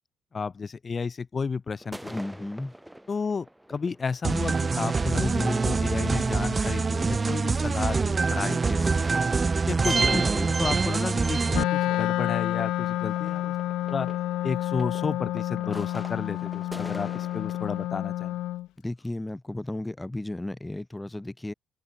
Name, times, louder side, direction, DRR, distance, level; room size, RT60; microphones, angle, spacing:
voice 1, 0.3-2.1 3.1-9.2 9.7-10.2 10.6-13.5 13.8-14.1 14.4-18.4, left 5 dB, 40° left, 6.1 m, -32 dB
sound 1, 1.8-17.9, right 1 dB, 5° right, 5.9 m, -46 dB
voice 2, 2.1-2.7 10.0-10.5 18.8-21.5, left 1 dB, 10° left, 3.3 m, -34 dB
sound 2, 4.2-11.6, right 4 dB, 35° right, 1.2 m, -25 dB
Wind instrument woodwind instrument, 11.5-18.7, left 15 dB, 75° left, 3.5 m, -29 dB
supercardioid pair, 60°, 0 cm